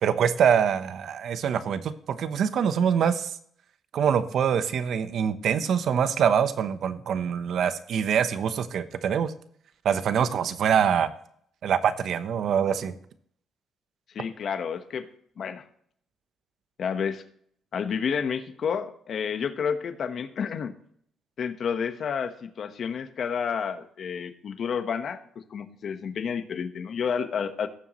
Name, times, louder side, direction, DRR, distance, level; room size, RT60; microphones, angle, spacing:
voice 1, 0.0-3.3 3.9-9.3 9.8-11.1 11.6-12.9, right 8 dB, 65° right, 12 dB, 0.9 m, -24 dB
voice 2, 14.1-15.1 15.4-15.6 16.8-17.2 17.7-20.7 21.4-25.2 25.5-27.7, left 7 dB, 60° left, 9 dB, 1.2 m, -30 dB
17.0 x 7.3 x 3.1 m, 0.64 s
cardioid pair, 90°, 0 cm